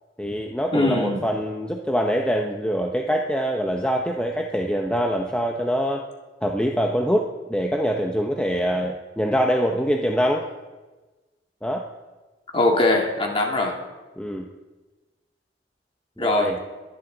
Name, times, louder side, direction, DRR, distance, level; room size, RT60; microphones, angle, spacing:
voice 1, 0.2-6.1 6.4-10.5 11.6-11.9 14.2-14.5 16.2-16.6, equal, 5° left, 1 dB, 0.7 m, -24 dB
voice 2, 0.7-1.2 12.5-13.8 16.2-16.5, left 2 dB, 30° left, 1 dB, 2.0 m, -21 dB
22.5 x 11.0 x 3.9 m, 1.2 s
head